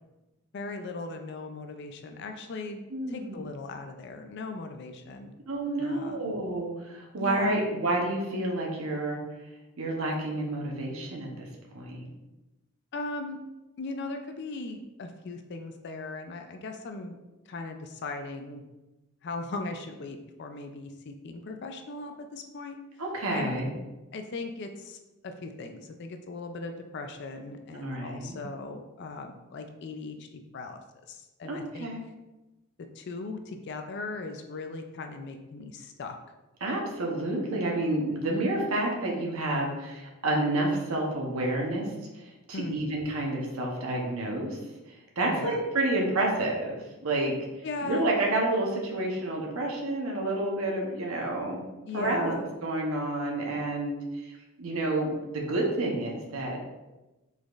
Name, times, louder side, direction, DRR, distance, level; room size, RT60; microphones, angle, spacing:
voice 1, 0.5-2.8 3.1-5.3 5.8-6.4 7.2-7.6 11.3-11.4 12.9-13.4 13.8-17.2 17.5-18.6 19.2-22.8 23.3-23.6 24.1-30.8 31.1-31.9 33.0-36.2 42.5-42.9 45.3-45.6 47.6-48.1 51.9-52.5, left 3 dB, 55° left, 6 dB, 0.4 m, -38 dB
voice 2, 2.9-3.5 5.5-9.2 9.8-11.5 11.7-12.0 23.0-23.7 27.7-28.4 31.4-32.0 36.6-41.9 42.1-44.6 45.2-46.7 47.0-47.3 47.8-51.6 51.9-52.3 52.6-54.0 54.3-56.6, right 2 dB, 90° right, -1 dB, 0.9 m, -29 dB
4.9 x 4.0 x 2.4 m, 1.0 s
head